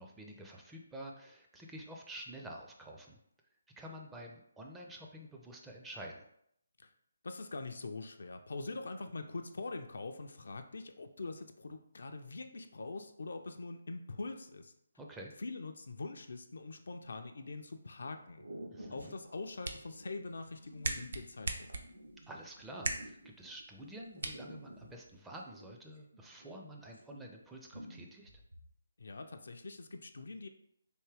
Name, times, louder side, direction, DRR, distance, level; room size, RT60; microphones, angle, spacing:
voice 1, 0.0-3.2 3.8-6.2 15.0-15.3 18.7-19.1 22.3-28.3, right 1 dB, 5° right, 0 dB, 0.4 m, -49 dB
voice 2, 7.2-14.7 15.4-18.4 18.9-21.7 29.0-30.5, left 3 dB, 65° left, 6 dB, 0.4 m, -43 dB
sound 1, 16.9-17.4 18.0-18.1 18.4-23.7 24.2-26.6 26.9-27.4 27.7-28.7, right 1 dB, 85° right, 0.8 m, -52 dB
sound 2, 19.2-25.2, right 3 dB, 65° right, 0.5 m, -43 dB
3.5 x 2.7 x 3.3 m, 0.71 s
figure-of-eight pair, 150°, 0 cm